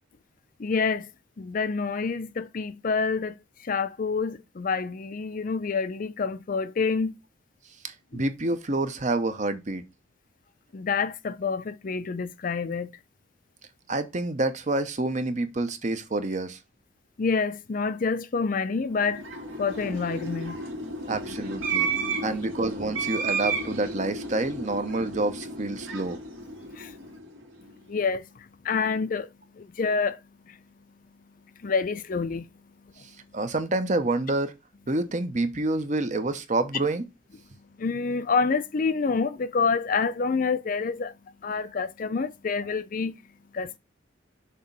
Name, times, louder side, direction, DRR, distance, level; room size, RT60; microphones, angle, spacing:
voice 1, 0.6-1.1 1.4-3.4 3.6-7.1 8.1-8.2 10.7-12.9 17.2-19.2 19.6-20.6 21.8-22.4 26.7-27.1 27.9-30.2 30.5-30.6 31.6-32.5 32.8-33.0 37.8-41.1 41.4-43.2 43.5-43.8, left 4 dB, 45° left, 0.4 m, -28 dB
voice 2, 7.8-9.8 13.9-16.6 21.1-21.9 22.2-26.2 33.0-34.5 34.9-37.1, right 2 dB, 40° right, 0.7 m, -28 dB
sound 1, 18.9-27.4, right 4 dB, 75° right, 2.5 m, -33 dB
6.5 x 3.0 x 5.3 m
head